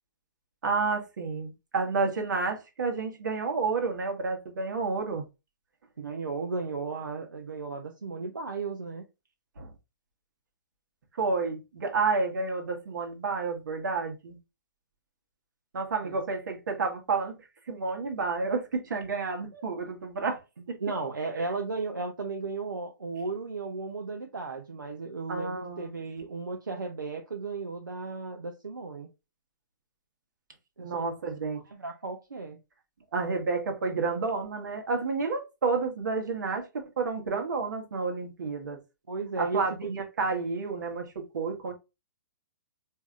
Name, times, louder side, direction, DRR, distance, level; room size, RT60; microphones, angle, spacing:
voice 1, 0.6-5.2 9.6-9.7 11.2-14.4 15.7-17.4 17.7-20.4 20.7-20.8 21.3-21.5 25.3-25.9 30.8-31.6 33.1-36.6 37.0-38.8 39.4-41.7, right 4 dB, 70° right, 1.3 m, -30 dB
voice 2, 6.0-9.0 16.0-16.2 19.5-19.6 20.8-29.1 30.8-31.1 31.7-32.6 39.1-39.9, right 3 dB, 90° right, 0.6 m, -35 dB
4.6 x 2.8 x 2.4 m
hypercardioid pair, 125°, 11 cm